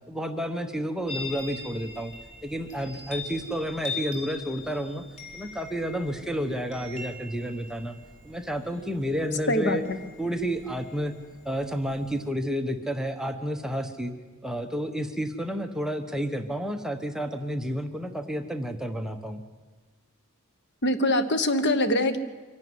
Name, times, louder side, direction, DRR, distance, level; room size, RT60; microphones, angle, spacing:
voice 1, 0.1-2.1 2.4-5.0 5.3-8.0 8.2-9.8 10.2-11.1 11.4-14.1 14.4-19.4, equal, 5° right, 5 dB, 0.9 m, -30 dB
Chime, 1.1-12.3, left 4 dB, 35° left, 3.6 m, -42 dB
voice 2, 9.5-10.0 20.8-22.2, left 1 dB, 55° left, 10 dB, 1.2 m, -23 dB
24.0 x 11.5 x 9.5 m, 1.4 s
head